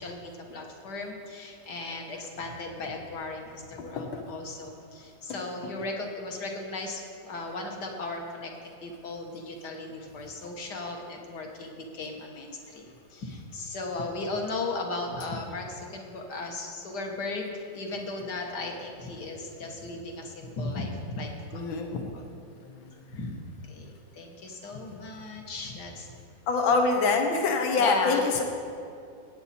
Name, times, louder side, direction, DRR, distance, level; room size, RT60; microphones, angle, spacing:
voice 1, 0.0-12.9 13.1-21.8 22.1-22.2 23.1-23.4 23.7-26.1 27.8-28.4, left 2 dB, 60° left, 2 dB, 1.9 m, -36 dB
voice 2, 3.8-4.2 21.5-22.1 22.6-22.9 26.5-28.4, left 4 dB, 85° left, 4 dB, 1.8 m, -25 dB
17.5 x 8.9 x 4.3 m, 2.4 s
omnidirectional pair, 2.1 m